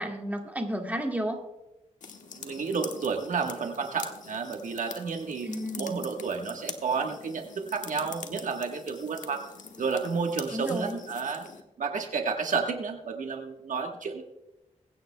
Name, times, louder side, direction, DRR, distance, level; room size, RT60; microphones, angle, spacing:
voice 1, 0.0-1.4 5.5-6.0 10.5-11.0, equal, 10° right, 2 dB, 2.0 m, -32 dB
sound 1, 2.0-11.6, left 5 dB, 80° left, 1.1 m, -44 dB
voice 2, 2.4-5.5 5.8-9.4 9.8-11.5 11.8-14.2, right 5 dB, 75° right, 4 dB, 1.3 m, -31 dB
22.5 x 9.3 x 2.2 m, 0.96 s
cardioid pair, 75°, 13 cm